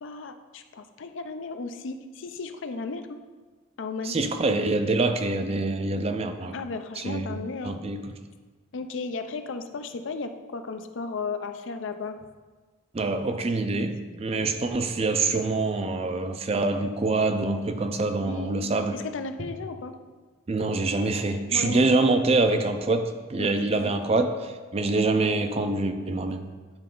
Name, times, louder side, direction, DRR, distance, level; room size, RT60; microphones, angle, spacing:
voice 1, 0.0-3.2 3.8-4.2 6.5-7.8 8.7-12.2 13.3-13.4 18.2-19.9 21.5-21.8 23.4-24.0, left 4 dB, 70° left, 8 dB, 0.5 m, -35 dB
voice 2, 4.0-6.6 7.0-7.4 7.6-8.0 12.9-18.9 20.5-26.5, right 3 dB, 30° right, 8 dB, 0.4 m, -25 dB
sound 1, 19.4-20.0, equal, 50° right, 1.0 m, -45 dB
9.6 x 4.2 x 3.8 m, 1.4 s
head